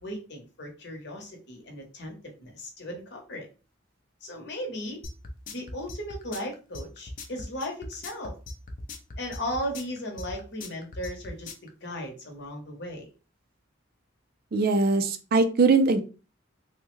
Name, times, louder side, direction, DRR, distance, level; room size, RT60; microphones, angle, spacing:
voice 1, 0.0-3.5 4.2-5.0 5.5-8.3 9.2-13.1, equal, 55° left, 2 dB, 0.9 m, -36 dB
sound 1, 5.0-11.7, left 2 dB, 40° left, 0.5 m, -39 dB
voice 2, 14.5-16.0, right 3 dB, 50° right, 9 dB, 0.4 m, -21 dB
3.3 x 2.1 x 3.0 m, 0.34 s
head